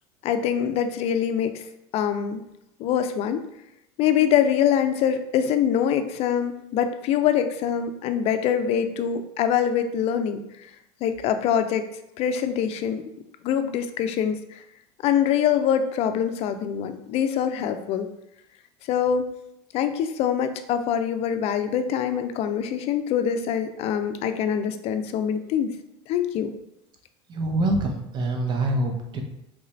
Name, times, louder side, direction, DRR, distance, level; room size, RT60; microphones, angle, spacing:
voice 1, 0.2-1.6 1.9-2.4 2.8-3.4 4.0-10.4 11.0-11.9 12.2-13.0 13.4-14.4 15.0-18.1 18.9-19.3 19.7-25.7 26.1-26.5, left 8 dB, 50° left, 8 dB, 0.4 m, -24 dB
voice 2, 27.3-29.2, right 2 dB, 35° right, 2 dB, 0.6 m, -25 dB
3.3 x 2.5 x 3.1 m, 0.82 s
supercardioid pair, 110°, 14 cm